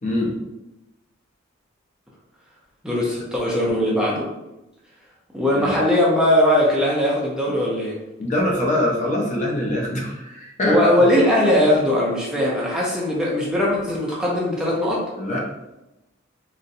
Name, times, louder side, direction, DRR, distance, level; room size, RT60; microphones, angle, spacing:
voice 1, 0.0-0.3 5.5-5.7 8.2-10.9 15.2-15.4, left 1 dB, 40° left, -1 dB, 0.6 m, -23 dB
voice 2, 2.8-4.3 5.3-8.0 10.7-15.0, left 1 dB, 5° right, -5 dB, 0.5 m, -20 dB
3.8 x 2.1 x 2.6 m, 0.95 s
head